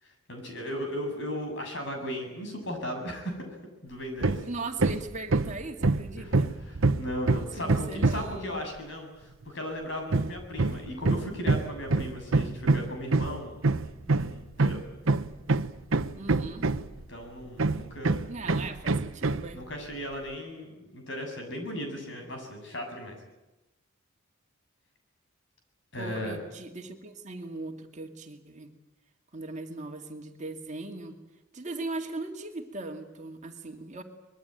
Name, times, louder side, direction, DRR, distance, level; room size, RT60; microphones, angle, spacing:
voice 1, 0.0-3.5 3.8-4.4 6.2-14.8 17.1-18.2 19.5-23.2 25.9-26.4, equal, 60° left, 4 dB, 7.5 m, -37 dB
Hammer, 4.2-4.5 4.8-8.4 10.1-17.0 17.6-19.5, right 3 dB, 75° right, 1.0 m, -26 dB
voice 2, 4.4-6.5 7.6-8.6 16.2-16.7 18.3-19.6 26.0-28.7 29.3-31.2 31.5-34.0, right 2 dB, 35° right, 4 dB, 2.3 m, -39 dB
25.0 x 22.0 x 9.1 m, 1.0 s
head